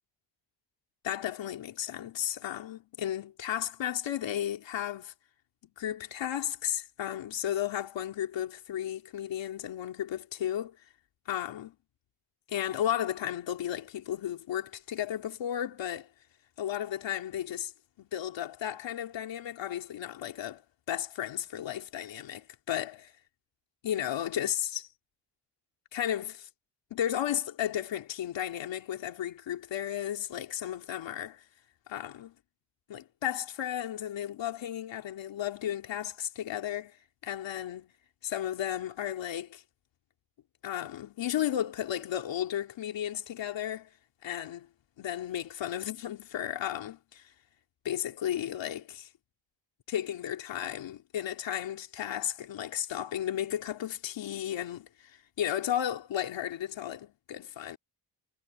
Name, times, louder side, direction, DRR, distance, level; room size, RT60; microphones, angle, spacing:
voice 1, 1.0-5.1 5.8-10.8 11.3-11.8 12.5-16.1 16.6-17.7 18.0-20.6 20.9-23.1 23.8-24.9 25.9-26.5 26.9-31.4 31.9-32.3 32.9-37.9 38.2-39.6 40.6-43.9 44.2-44.7 45.0-47.3 47.8-49.1 49.9-57.8, left 11 dB, 85° left, 3.1 m, -34 dB
cardioid pair, 70°, 44 cm